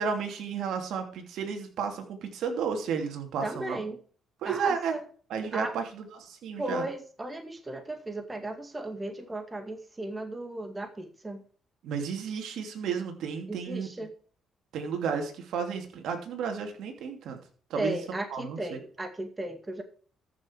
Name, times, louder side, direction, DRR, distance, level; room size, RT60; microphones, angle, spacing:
voice 1, 0.0-3.8 4.4-5.0 5.3-6.9 11.8-13.9 14.7-17.4 17.7-18.0 18.3-18.8, right 6 dB, 80° right, 4 dB, 2.9 m, -32 dB
voice 2, 3.4-4.0 4.4-5.0 5.5-5.7 6.6-11.4 13.5-14.1 17.7-19.8, right 1 dB, 20° right, 6 dB, 2.1 m, -35 dB
14.0 x 6.6 x 4.7 m, 0.44 s
cardioid pair, 90°, 0 cm